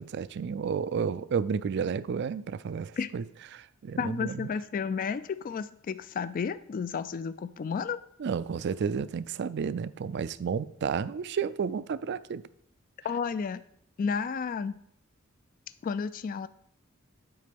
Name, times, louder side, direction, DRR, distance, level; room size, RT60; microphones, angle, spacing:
voice 1, 0.0-3.2 3.5-4.5 8.2-12.4, right 6 dB, 55° right, 0.4 m, -31 dB
voice 2, 4.0-8.0 13.0-13.6 14.0-14.8 15.8-16.5, left 6 dB, 40° left, 0.3 m, -32 dB
9.5 x 4.2 x 5.2 m
head